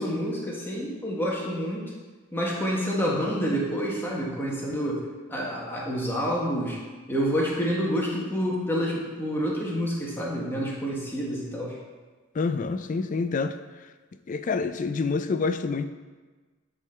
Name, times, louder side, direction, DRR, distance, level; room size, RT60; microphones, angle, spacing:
voice 1, 0.0-1.9 2.3-5.0 5.3-6.8 7.1-11.8, equal, 10° left, -4 dB, 1.2 m, -28 dB
voice 2, 12.3-13.6 14.3-15.8, left 4 dB, 40° left, 10 dB, 0.3 m, -27 dB
9.0 x 3.9 x 4.3 m, 1.3 s
head